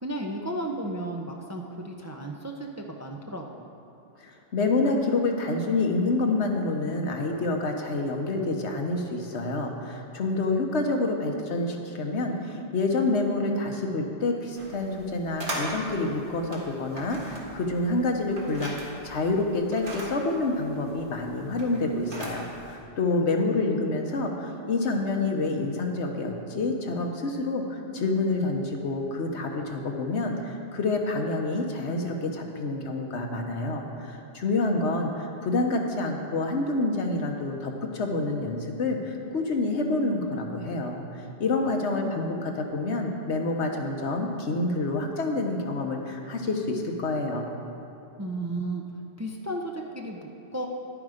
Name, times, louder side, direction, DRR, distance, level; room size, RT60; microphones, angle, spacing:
voice 1, 0.0-3.7 23.1-23.8 42.0-42.5 48.2-48.8 49.2-50.7, right 1 dB, 20° right, 1 dB, 0.5 m, -34 dB
voice 2, 4.2-41.0 41.4-47.5, left 2 dB, 75° left, 3 dB, 1.3 m, -28 dB
sound 1, 14.6-22.8, right 1 dB, 50° right, 1.8 m, -40 dB
11.0 x 8.5 x 5.0 m, 2.9 s
omnidirectional pair, 1.2 m